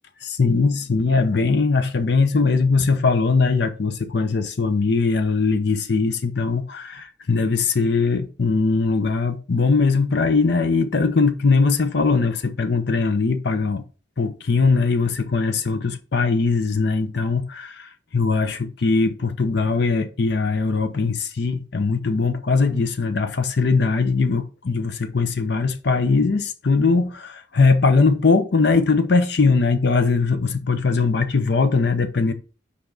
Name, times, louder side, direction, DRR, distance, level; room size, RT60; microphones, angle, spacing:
voice 1, 0.2-13.8 14.2-32.3, left 4 dB, 65° left, 0.6 m, -20 dB
5.6 x 5.0 x 3.8 m
head